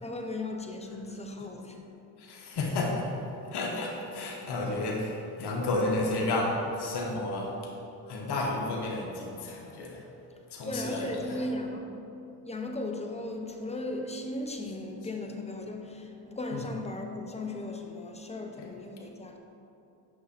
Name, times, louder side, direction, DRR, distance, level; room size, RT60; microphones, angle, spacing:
voice 1, 0.0-1.9 10.6-11.9 12.4-19.4, left 2 dB, 15° left, 3 dB, 0.9 m, -36 dB
voice 2, 2.2-3.2 3.5-7.6 8.1-10.0 10.5-11.5 14.6-14.7 16.5-16.7 18.6-18.7, left 2 dB, 65° left, -2 dB, 1.3 m, -32 dB
6.6 x 5.6 x 4.3 m, 2.8 s
supercardioid pair, 55°, 44 cm